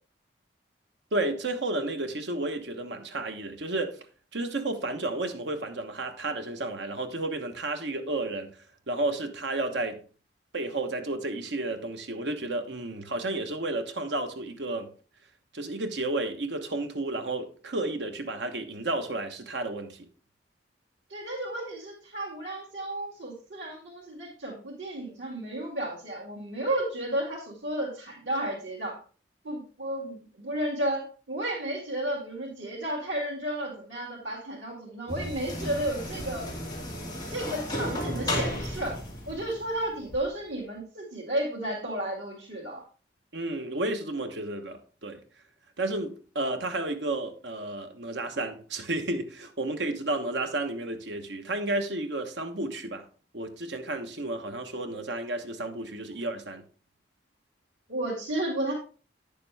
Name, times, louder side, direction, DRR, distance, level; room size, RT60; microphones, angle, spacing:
voice 1, 1.1-4.0 4.3-8.5 8.9-10.0 10.5-14.9 15.5-20.1 43.3-45.2 45.8-53.1 53.3-56.6, right 2 dB, 70° right, 1.2 m, -32 dB
voice 2, 21.1-29.0 29.4-36.5 37.3-39.0 39.3-42.8 57.9-58.7, right 1 dB, 90° right, 2.3 m, -33 dB
sound 1, 35.1-40.2, left 1 dB, 25° left, 2.2 m, -34 dB
9.5 x 6.8 x 3.4 m
head